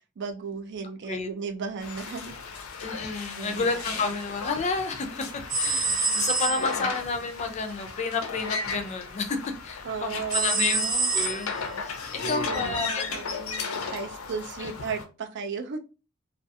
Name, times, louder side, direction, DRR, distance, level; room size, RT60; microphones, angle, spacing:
voice 1, 0.2-2.3 3.4-4.1 6.5-6.9 9.8-11.1 12.2-15.8, right 5 dB, 55° right, 6 dB, 0.4 m, -35 dB
sound 1, 1.8-15.0, left 4 dB, 90° left, 0.5 m, -35 dB
voice 2, 2.8-5.2 5.5-10.8 11.1-11.5 11.8-12.0 12.3-13.0 14.6-14.7, left 4 dB, 35° left, 6 dB, 0.4 m, -30 dB
sound 2, 5.5-6.9 10.3-11.8, right 2 dB, 40° right, 0.8 m, -27 dB
2.4 x 2.3 x 2.6 m, 0.32 s
head